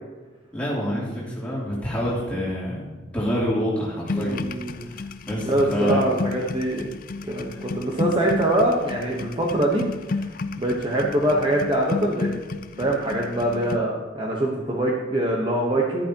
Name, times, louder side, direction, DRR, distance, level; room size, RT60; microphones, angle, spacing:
voice 1, 0.5-2.9 3.1-4.4 4.8-6.0 7.5-7.7, equal, 5° left, -7 dB, 2.9 m, -27 dB
sound 1, 4.1-13.8, left 3 dB, 45° left, 0.4 m, -32 dB
voice 2, 4.1-4.9 5.5-6.9 7.3-9.8 10.1-10.3 10.6-12.3 12.8-16.1, right 1 dB, 25° right, -2 dB, 1.0 m, -23 dB
11.5 x 11.0 x 2.9 m, 1.3 s
head